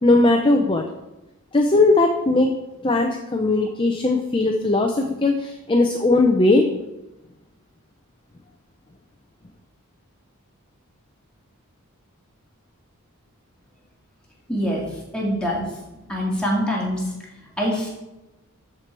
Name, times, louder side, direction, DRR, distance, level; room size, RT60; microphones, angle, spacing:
voice 1, 0.0-0.8 1.5-2.5 2.8-6.7, left 2 dB, 25° left, 3 dB, 0.5 m, -18 dB
voice 2, 14.5-14.8 15.1-15.7 16.0-17.0 17.6-17.9, equal, 5° left, -4 dB, 2.1 m, -24 dB
12.5 x 4.5 x 4.6 m, 0.99 s
head